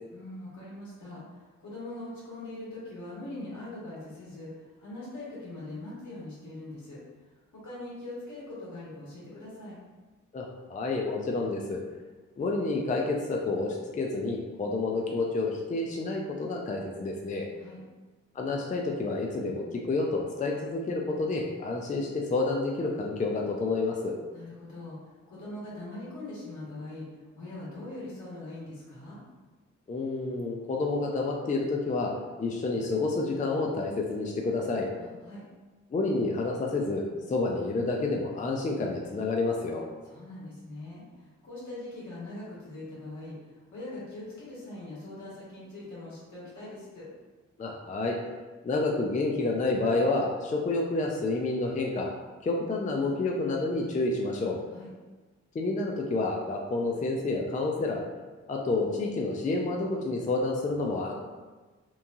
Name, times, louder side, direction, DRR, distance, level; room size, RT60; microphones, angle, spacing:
voice 1, 0.1-7.0 7.5-9.8 17.6-17.8 24.3-27.1 27.3-29.2 35.0-35.4 40.0-47.1 54.7-54.9, left 2 dB, 70° left, -7 dB, 1.4 m, -42 dB
voice 2, 10.3-11.8 12.4-17.5 18.3-24.1 29.9-32.1 32.4-34.9 35.9-39.8 47.6-48.2 48.6-52.1 52.4-54.6 55.5-58.0 58.5-61.1, left 3 dB, 25° left, 0 dB, 0.4 m, -29 dB
3.0 x 2.2 x 2.6 m, 1.3 s
supercardioid pair, 50°, 30 cm